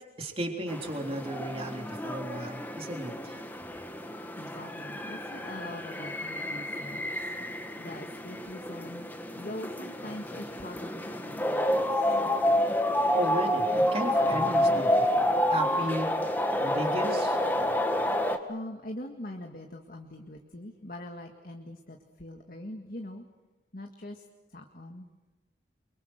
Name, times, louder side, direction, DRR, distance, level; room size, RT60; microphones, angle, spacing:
voice 1, 0.2-3.4 13.1-16.1 16.6-17.4, right 1 dB, 35° right, 2 dB, 3.7 m, -35 dB
sound 1, 0.7-18.4, left 1 dB, 10° left, 1.7 m, -29 dB
voice 2, 4.1-12.2 18.5-23.3 23.7-24.3 24.5-25.1, left 1 dB, 50° left, 3 dB, 1.9 m, -43 dB
29.0 x 24.0 x 6.5 m, 1.1 s
head